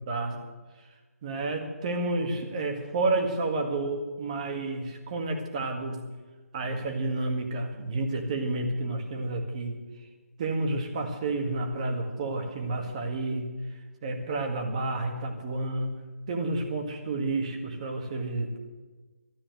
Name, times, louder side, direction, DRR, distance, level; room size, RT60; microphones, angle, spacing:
voice 1, 0.1-0.4 1.2-6.0 6.5-9.8 10.4-13.5 14.0-16.0 16.3-18.6, right 2 dB, 25° right, 4 dB, 1.8 m, -30 dB
13.5 x 8.5 x 9.4 m, 1.3 s
hypercardioid pair, 170°, 8 cm